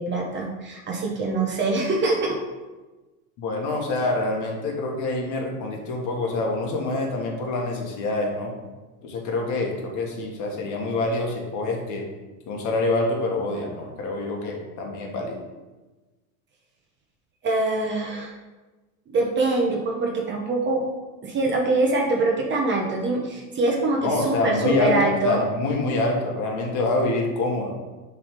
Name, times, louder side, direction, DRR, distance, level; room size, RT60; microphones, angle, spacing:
voice 1, 0.0-2.4 17.4-18.3 19.1-20.8 21.2-25.4, right 2 dB, 25° right, 0 dB, 0.9 m, -24 dB
voice 2, 3.4-8.5 9.0-12.0 12.5-15.4 24.0-27.7, left 2 dB, 40° left, 1 dB, 1.5 m, -26 dB
6.5 x 3.6 x 5.3 m, 1.2 s
supercardioid pair, 120°, 44 cm